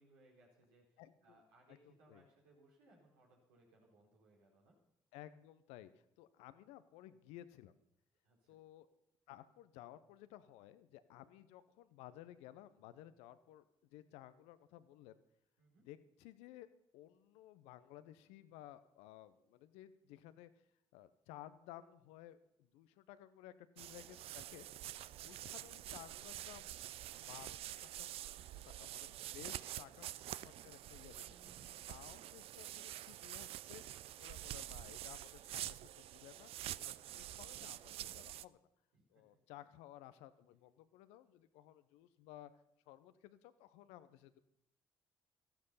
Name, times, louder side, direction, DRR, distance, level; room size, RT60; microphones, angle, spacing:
voice 1, 0.0-4.8 8.2-8.6 15.6-15.9 25.1-25.3 29.4-30.1 31.2-31.9 36.9-37.2 38.9-39.4, right 2 dB, 85° right, -2 dB, 3.9 m, -68 dB
voice 2, 1.0-1.4 1.7-2.2 5.1-7.7 8.5-8.9 9.3-13.6 13.9-15.2 15.8-16.7 16.9-20.5 20.9-24.6 25.2-26.8 27.1-31.4 31.9-33.8 34.2-36.5 37.1-38.6 39.1-42.5 42.9-44.4, left 13 dB, 75° left, 13 dB, 0.8 m, -56 dB
sound 1, 23.8-38.5, right 13 dB, 65° right, 0.4 m, -47 dB
14.0 x 12.0 x 5.6 m, 0.79 s
hypercardioid pair, 45°, 11 cm